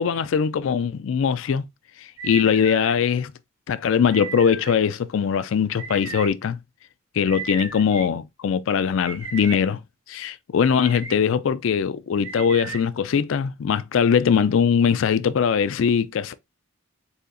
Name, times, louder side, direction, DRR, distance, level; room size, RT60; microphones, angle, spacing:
voice 1, 0.0-1.6 2.2-3.3 3.7-6.6 7.1-9.8 10.1-16.3, left 7 dB, 65° left, 0.3 m, -21 dB
sound 1, 2.2-3.0 4.1-4.7 5.8-6.3 7.3-8.1 9.0-9.6 10.6-11.2 12.2-12.8, right 5 dB, 65° right, 1.2 m, -35 dB
4.2 x 2.8 x 2.5 m
head